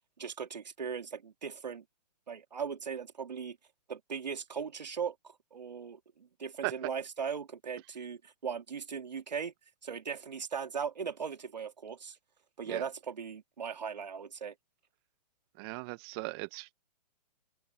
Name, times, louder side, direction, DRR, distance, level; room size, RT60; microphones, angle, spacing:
voice 1, 0.2-1.8 2.3-3.6 3.9-9.5 9.8-12.2 12.6-14.5, right 6 dB, 80° right, 2.9 m, -38 dB
voice 2, 15.6-16.7, right 28 dB, 35° right, 1.0 m, -37 dB
open air
hypercardioid pair, 125°, 21 cm